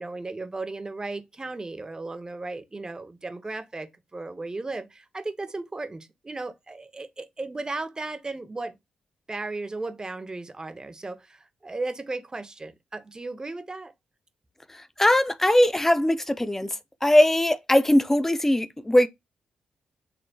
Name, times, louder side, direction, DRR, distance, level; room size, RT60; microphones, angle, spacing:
voice 1, 0.0-8.7 9.3-13.9, right 3 dB, 25° right, 0.8 m, -35 dB
voice 2, 15.0-16.7 17.0-19.1, left 1 dB, 10° left, 0.5 m, -20 dB
5.2 x 3.1 x 2.3 m
supercardioid pair, 55°, 3 cm